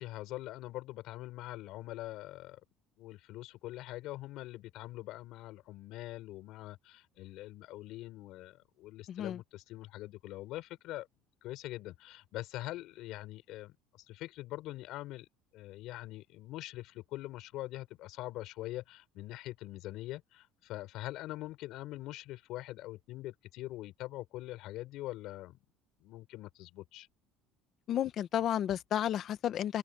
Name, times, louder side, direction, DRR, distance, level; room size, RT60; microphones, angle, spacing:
voice 1, 0.0-2.6 3.0-11.1 11.4-13.8 14.1-15.3 15.5-25.6 26.0-27.1, left 16 dB, 60° left, 6.4 m, -43 dB
voice 2, 9.1-9.4 27.9-29.8, left 10 dB, 45° left, 1.2 m, -32 dB
open air
cardioid pair, 145°, 0 cm